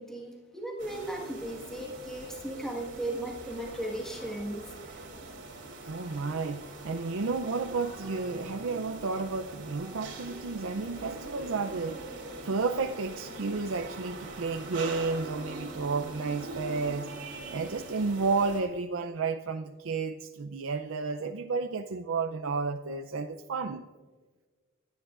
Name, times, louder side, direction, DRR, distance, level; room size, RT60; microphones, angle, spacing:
voice 1, 0.0-5.0, right 1 dB, ahead, -2 dB, 1.5 m, -37 dB
sound 1, 0.8-18.6, right 2 dB, 60° right, 3.2 m, -43 dB
voice 2, 5.9-12.2 12.4-17.1 17.5-23.9, right 4 dB, 85° right, 6 dB, 0.6 m, -32 dB
25.5 x 10.5 x 2.5 m, 1.4 s
head